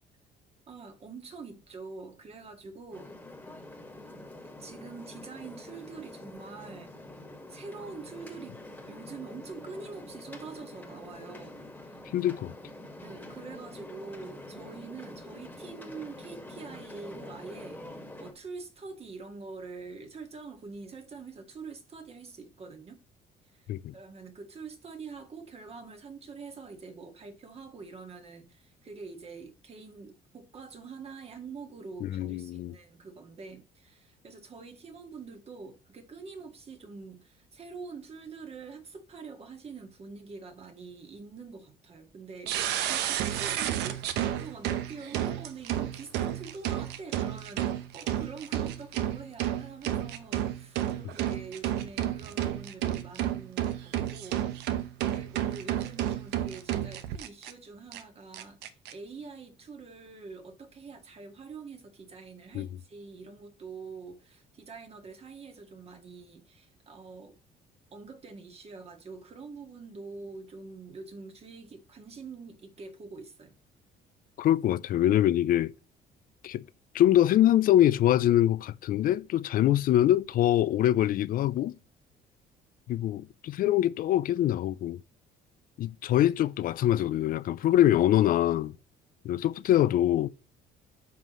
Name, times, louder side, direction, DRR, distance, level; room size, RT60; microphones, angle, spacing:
voice 1, 0.7-3.1 4.6-6.9 7.5-8.6 8.9-12.0 13.0-17.8 18.2-23.0 23.5-23.7 23.9-54.4 55.1-67.4 67.9-73.6 83.0-83.1, right 4 dB, 35° right, 1.9 m, -45 dB
sound 1, 2.9-18.3, left 1 dB, 10° left, 1.8 m, -46 dB
voice 2, 12.1-12.5 23.7-23.9 32.0-32.8 62.5-62.7 74.4-75.7 76.4-76.6 76.9-81.7 82.9-85.0 85.8-88.7 89.2-90.3, left 12 dB, 55° left, 0.4 m, -24 dB
sound 2, 42.5-57.5 57.9-58.0 58.3-58.9, right 12 dB, 90° right, 0.9 m, -31 dB
9.2 x 5.8 x 3.1 m
cardioid pair, 110°, 17 cm